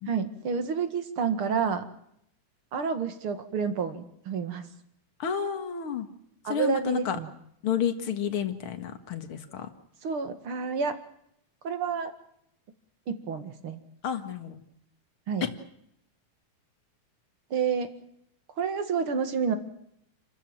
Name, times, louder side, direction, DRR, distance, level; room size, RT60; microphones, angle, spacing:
voice 1, 0.1-1.8 2.7-4.7 6.4-7.3 10.0-10.9 11.6-12.1 13.1-13.8 15.3-15.5 17.5-17.9 18.6-19.6, right 6 dB, 45° right, 9 dB, 2.5 m, -29 dB
voice 2, 5.2-6.1 6.5-7.2 7.6-9.7 14.0-14.6 15.4-15.5, left 8 dB, 50° left, 8 dB, 2.4 m, -30 dB
29.0 x 14.0 x 9.0 m, 0.74 s
omnidirectional pair, 3.6 m